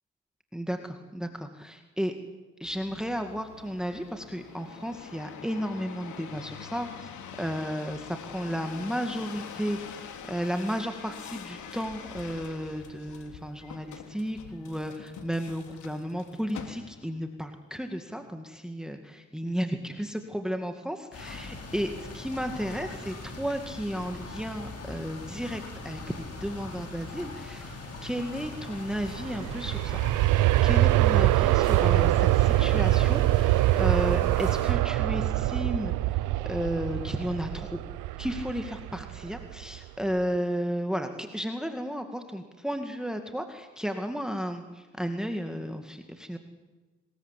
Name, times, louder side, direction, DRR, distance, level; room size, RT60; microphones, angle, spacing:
voice 1, 0.5-2.1 2.6-7.1 7.4-26.1 26.4-27.8 28.0-30.0 30.6-37.8 38.2-46.4, equal, ahead, 6 dB, 2.2 m, -33 dB
sound 1, 2.6-17.2 17.8-18.3, left 7 dB, 75° left, 3.2 m, -44 dB
sound 2, 21.1-34.7, left 3 dB, 55° left, 6.7 m, -41 dB
Aircraft, 28.9-39.8 40.2-40.3, right 16 dB, 90° right, 0.7 m, -24 dB
25.5 x 20.5 x 8.4 m, 1.3 s
cardioid pair, 90°, 30 cm